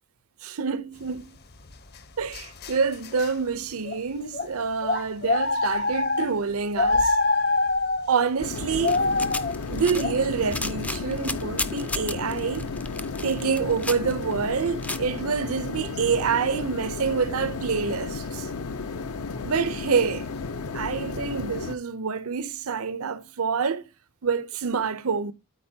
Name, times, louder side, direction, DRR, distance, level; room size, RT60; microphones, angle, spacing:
voice 1, 0.4-1.4 2.2-7.2 8.1-9.1 9.7-12.7 13.2-18.5 19.4-20.2 20.7-23.8 24.2-25.3, right 5 dB, 75° right, 0.7 m, -27 dB
sound 1, 1.7-3.3 3.8-4.0 4.3-4.5 4.8-6.4 6.8-8.1 8.6-11.6 11.9-12.3 13.9-14.0, left 3 dB, 45° left, 0.7 m, -26 dB
sound 2, 8.4-21.7, left 4 dB, 85° left, 0.6 m, -33 dB
sound 3, 8.6-15.0, left 2 dB, 5° left, 0.3 m, -34 dB
12.0 x 4.4 x 2.8 m
head